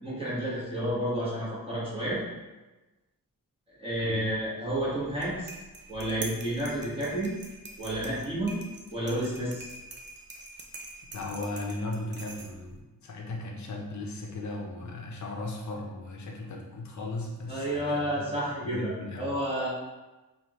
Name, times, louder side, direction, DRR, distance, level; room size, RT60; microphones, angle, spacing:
voice 1, 0.0-2.2 3.8-5.5 5.9-7.3 7.8-8.5 8.9-9.7 17.5-19.7, right 1 dB, 15° right, -8 dB, 1.3 m, -30 dB
sound 1, 5.1-12.8, right 2 dB, 30° right, 0.5 m, -45 dB
voice 2, 11.1-18.3 18.6-19.3, left 2 dB, 55° left, 0 dB, 0.7 m, -37 dB
4.8 x 2.5 x 2.9 m, 1.1 s
wide cardioid pair, 140°, 36 cm